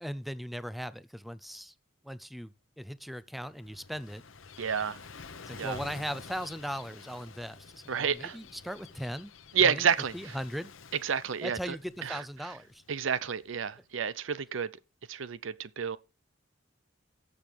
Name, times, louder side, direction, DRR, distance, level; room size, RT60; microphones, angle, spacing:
voice 1, 0.0-1.7 2.0-4.2 5.5-9.3 9.6-9.9 10.1-10.7 11.4-12.8, equal, ahead, 0.5 m, -38 dB
Gull seagull / Waves surf, 3.2-13.8, left 5 dB, 85° left, 1.0 m, -50 dB
voice 2, 4.6-5.0 5.6-5.8 7.9-8.4 9.5-10.4 11.0-11.8 12.0-12.2 12.9-14.8 15.1-16.0, right 7 dB, 75° right, 0.6 m, -30 dB
17.5 x 6.8 x 3.4 m
head